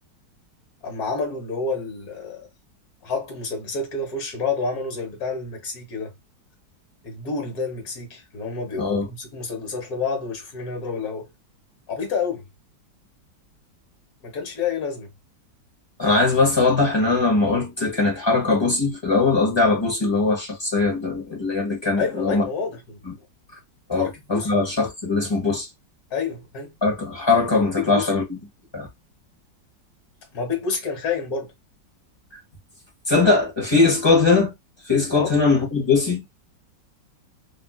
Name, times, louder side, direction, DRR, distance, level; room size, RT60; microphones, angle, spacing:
voice 1, 0.8-2.5 3.0-6.1 7.0-11.3 11.9-12.4 14.2-15.1 22.0-23.0 23.9-24.5 26.1-26.8 27.8-28.1 30.3-31.5 35.2-35.3, left 4 dB, 55° left, 1.8 m, -29 dB
voice 2, 16.0-22.4 23.1-23.2 23.9-25.7 26.8-28.4 28.7-28.9 33.1-34.5 34.9-36.2, left 3 dB, 20° left, 0.8 m, -20 dB
3.4 x 2.7 x 2.3 m
omnidirectional pair, 1.9 m